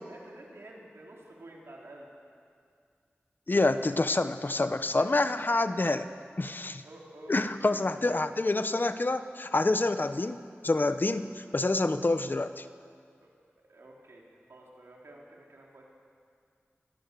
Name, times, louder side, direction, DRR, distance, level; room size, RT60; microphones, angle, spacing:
voice 1, 0.1-2.1 4.7-5.1 6.8-7.8 13.2-13.3 13.7-15.9, right 1 dB, 90° right, -2 dB, 4.0 m, -50 dB
voice 2, 3.5-6.1 6.4-6.8 7.3-10.4 10.6-12.6, left 2 dB, 50° left, 11 dB, 0.9 m, -27 dB
23.0 x 17.0 x 6.8 m, 2.2 s
wide cardioid pair, 50°, 4 cm